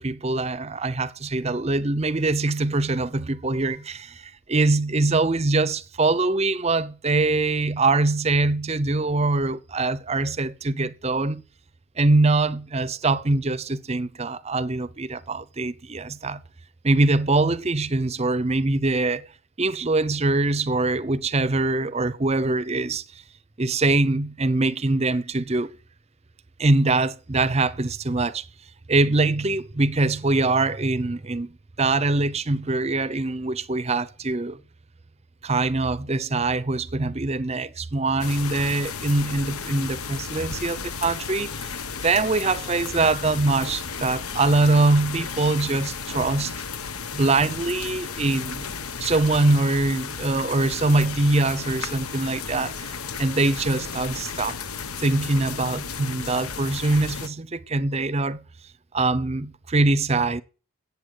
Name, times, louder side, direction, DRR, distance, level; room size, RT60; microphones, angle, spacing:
voice 1, 0.0-11.4 12.0-16.4 16.8-19.3 19.6-23.0 23.6-25.7 26.6-28.5 28.9-34.6 35.4-41.7 42.0-46.5 47.1-48.7 49.0-52.9 53.2-54.6 55.0-58.4 58.9-60.4, right 2 dB, 30° right, 0.6 m, -23 dB
sound 1, 38.2-57.3, left 6 dB, 80° left, 1.2 m, -34 dB
14.0 x 8.5 x 8.2 m
head